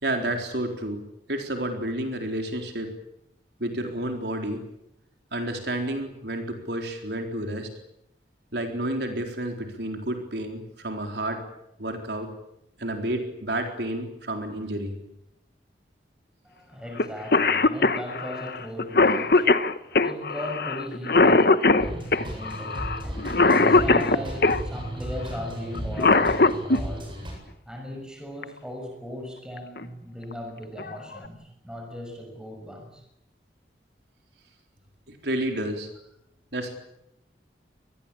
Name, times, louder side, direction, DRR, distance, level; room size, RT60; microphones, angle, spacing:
voice 1, 0.0-1.0 1.3-2.9 3.6-4.6 5.3-7.7 8.5-11.4 11.8-12.3 12.8-14.9 35.1-35.9 36.5-36.7, right 1 dB, 65° right, 4 dB, 4.1 m, -30 dB
voice 2, 16.4-27.2 27.7-33.1, left 1 dB, 5° right, 3 dB, 6.2 m, -38 dB
Cough, 17.0-17.1 17.3-24.6 25.7-26.8 28.4-28.5 29.6-29.8 30.3-30.4 30.8-31.3, left 3 dB, 55° left, 1.1 m, -20 dB
sound 1, 21.8-27.3, right 1 dB, 30° right, 8.0 m, -34 dB
26.5 x 21.0 x 8.7 m, 0.80 s
head